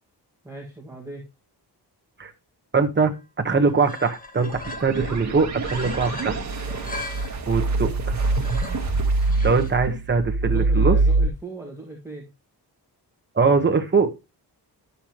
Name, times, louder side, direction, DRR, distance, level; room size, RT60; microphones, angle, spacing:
voice 1, 0.4-1.3 10.4-12.3, right 2 dB, 5° right, -3 dB, 1.8 m, -38 dB
voice 2, 2.7-3.1 3.4-6.4 7.5-8.2 9.4-10.9 13.3-14.1, right 4 dB, 25° right, 4 dB, 1.1 m, -22 dB
sound 1, 3.1-3.2 3.5-5.2 5.6-7.4 8.0-9.7, left 2 dB, 20° left, 1.2 m, -39 dB
sound 2, 4.4-11.3, right 3 dB, 40° right, 1.5 m, -24 dB
11.5 x 6.9 x 3.0 m, 0.26 s
wide cardioid pair, 175°, 41 cm